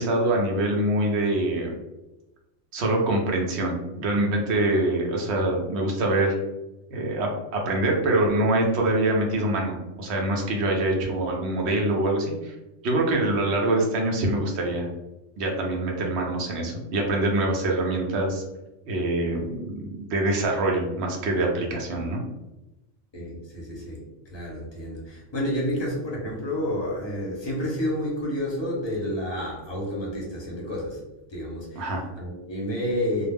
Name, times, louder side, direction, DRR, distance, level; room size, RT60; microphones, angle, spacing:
voice 1, 0.0-1.7 2.7-6.4 6.9-12.5 12.8-14.9 15.4-18.4 18.9-22.2 31.8-32.0, right 1 dB, 65° right, 0 dB, 0.8 m, -24 dB
voice 2, 23.1-24.0 24.3-31.0 31.3-33.3, left 1 dB, 30° left, -3 dB, 0.6 m, -30 dB
2.3 x 2.0 x 3.3 m, 0.98 s
omnidirectional pair, 1.3 m